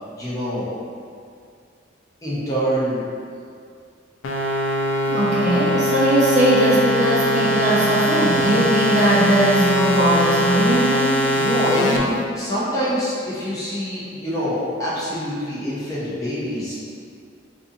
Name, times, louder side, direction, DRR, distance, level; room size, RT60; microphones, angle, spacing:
voice 1, 0.2-0.7 2.2-3.1 11.3-16.9, equal, 15° left, -10 dB, 0.6 m, -25 dB
sound 1, 4.2-12.0, equal, 80° left, 0.4 m, -21 dB
voice 2, 5.1-11.1, equal, 35° right, -6 dB, 0.4 m, -19 dB
2.5 x 2.5 x 2.6 m, 2.3 s
head